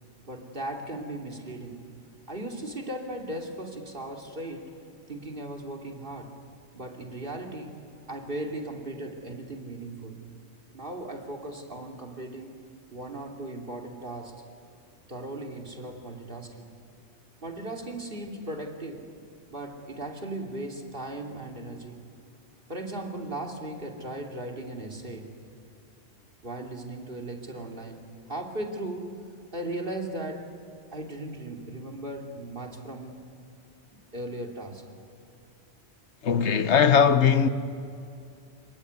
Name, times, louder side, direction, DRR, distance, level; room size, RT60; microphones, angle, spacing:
voice 1, 0.3-1.9 2.3-4.7 5.1-6.4 6.7-7.8 8.1-10.3 10.7-12.6 12.9-14.4 15.1-16.7 17.4-19.1 19.5-22.0 22.7-25.3 26.4-29.2 29.5-30.5 30.9-33.2 34.1-34.8, right 1 dB, 55° right, 3.1 m, -37 dB
voice 2, 36.2-37.5, left 7 dB, 90° left, 1.3 m, -20 dB
26.5 x 23.0 x 9.6 m
omnidirectional pair, 1.1 m